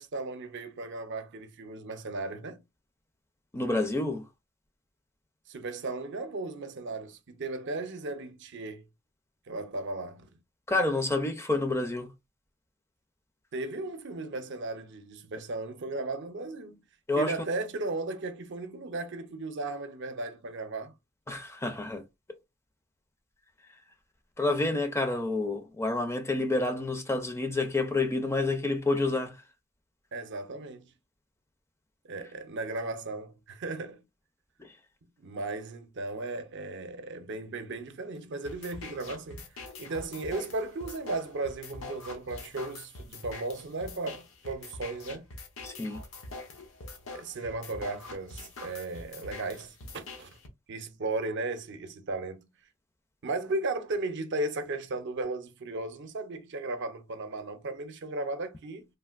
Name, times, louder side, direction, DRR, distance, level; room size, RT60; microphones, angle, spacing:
voice 1, 0.0-2.6 5.5-8.8 9.5-10.3 13.5-16.8 17.2-20.9 30.1-30.9 32.0-34.0 35.2-45.3 47.1-50.4 50.7-52.5 53.2-58.9, right 2 dB, 60° right, 0.6 m, -36 dB
voice 2, 3.5-4.3 10.7-12.1 17.1-17.3 21.3-22.0 24.4-29.4 34.6-34.7 45.6-46.0, left 2 dB, 15° left, 0.4 m, -29 dB
sound 1, 38.4-50.5, left 3 dB, 80° left, 0.8 m, -44 dB
3.3 x 2.5 x 2.4 m
head